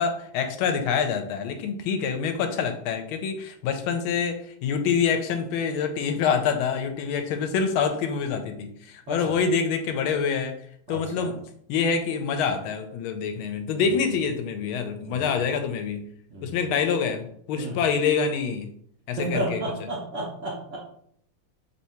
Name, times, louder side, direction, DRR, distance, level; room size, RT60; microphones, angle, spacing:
voice 1, 0.0-10.6 10.9-11.4 11.7-16.0 16.4-18.7 19.1-19.6, left 6 dB, 85° left, 7 dB, 1.4 m, -26 dB
voice 2, 9.1-9.4 10.9-11.3 15.0-15.3 16.3-16.7 17.6-17.8 19.2-20.8, right 1 dB, 65° right, -3 dB, 0.7 m, -32 dB
3.6 x 2.7 x 4.3 m, 0.66 s
omnidirectional pair, 2.3 m